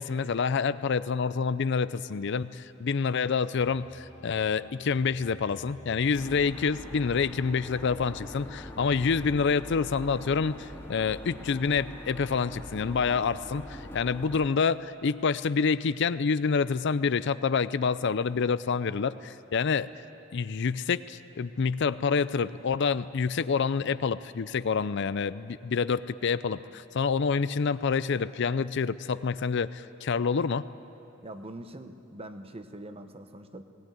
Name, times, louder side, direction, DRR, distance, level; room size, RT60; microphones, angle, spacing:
voice 1, 0.0-19.9 20.3-30.7, left 5 dB, 60° left, 15 dB, 0.5 m, -27 dB
sound 1, 3.6-9.3, left 1 dB, 30° left, 2.6 m, -52 dB
sound 2, 6.1-14.5, equal, 10° left, 2.1 m, -43 dB
voice 2, 31.2-33.6, right 1 dB, 30° right, 8 dB, 1.0 m, -43 dB
19.5 x 17.5 x 9.3 m, 2.8 s
head